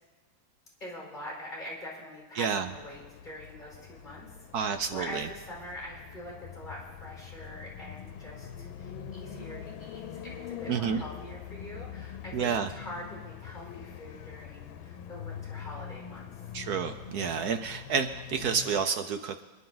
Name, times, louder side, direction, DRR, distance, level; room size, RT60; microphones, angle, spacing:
voice 1, 0.8-16.3, left 1 dB, 20° left, -4 dB, 5.2 m, -44 dB
voice 2, 2.4-2.7 4.5-5.3 10.7-11.0 12.3-12.7 16.5-19.4, right 6 dB, 65° right, 8 dB, 1.0 m, -29 dB
sound 1, 2.6-18.9, left 9 dB, 80° left, 1.6 m, -44 dB
26.5 x 11.0 x 3.9 m, 1.3 s
omnidirectional pair, 2.2 m